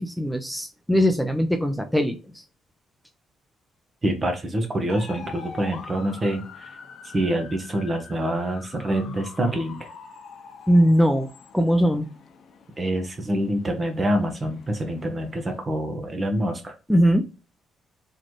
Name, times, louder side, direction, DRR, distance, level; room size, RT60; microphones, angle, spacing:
voice 1, 0.0-2.4 10.7-11.3 11.5-12.1 16.9-17.3, equal, ahead, 6 dB, 0.5 m, -20 dB
voice 2, 4.0-6.7 7.1-9.9 12.8-16.7, right 1 dB, 30° right, 5 dB, 0.9 m, -26 dB
sound 1, 4.9-15.6, left 5 dB, 60° left, 0.7 m, -45 dB
3.8 x 3.2 x 3.0 m, 0.32 s
cardioid pair, 90°, 0 cm